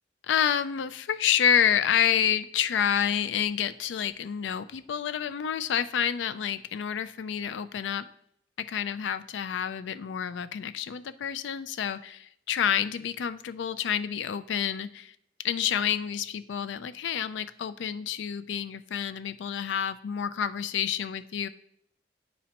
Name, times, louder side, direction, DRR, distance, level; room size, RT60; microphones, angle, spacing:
voice 1, 0.3-8.0 8.6-15.1 15.4-21.5, left 8 dB, 85° left, 13 dB, 0.4 m, -28 dB
10.5 x 4.1 x 2.9 m, 0.69 s
head